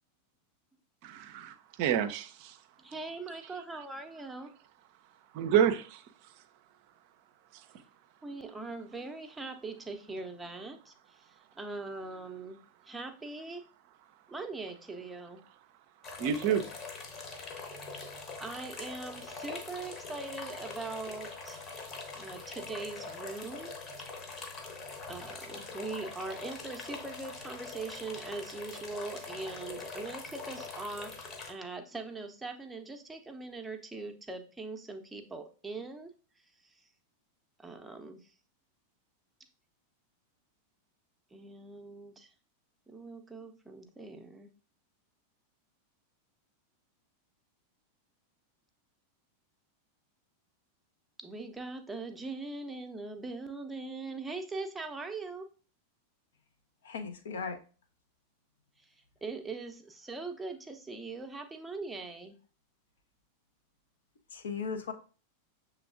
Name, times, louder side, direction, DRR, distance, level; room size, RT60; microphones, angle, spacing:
voice 1, 1.0-2.6 5.3-6.0 16.2-16.6, right 9 dB, 45° right, 0.5 m, -28 dB
voice 2, 2.8-4.5 8.2-12.6 12.8-13.6 14.3-15.4 18.4-21.6 22.1-23.7 25.1-31.1 31.5-36.1 36.6-36.8 37.6-38.3 41.3-42.3 42.9-44.5 51.2-55.5 58.8-58.9 59.2-62.4, right 3 dB, 10° right, 0.7 m, -41 dB
sound 1, 16.0-31.5, left 4 dB, 30° left, 1.0 m, -43 dB
voice 3, 56.8-57.6 64.3-64.9, left 5 dB, 65° left, 0.6 m, -37 dB
6.7 x 3.2 x 2.5 m
figure-of-eight pair, 90°, 0 cm